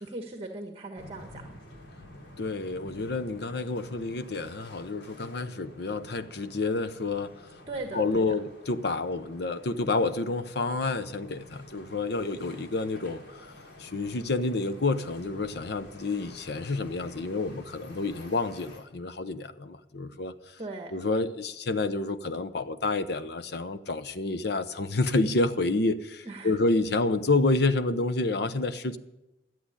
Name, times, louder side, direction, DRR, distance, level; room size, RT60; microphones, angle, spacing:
voice 1, 0.0-1.5 7.7-8.2 20.6-20.9 26.2-26.6, right 2 dB, 35° right, 4 dB, 1.3 m, -38 dB
sound 1, 1.0-18.8, left 1 dB, 85° left, 3.7 m, -50 dB
voice 2, 2.4-7.3 7.9-13.2 13.8-20.3 20.9-29.0, left 3 dB, 65° left, 11 dB, 0.8 m, -29 dB
12.5 x 7.8 x 9.9 m, 0.97 s
head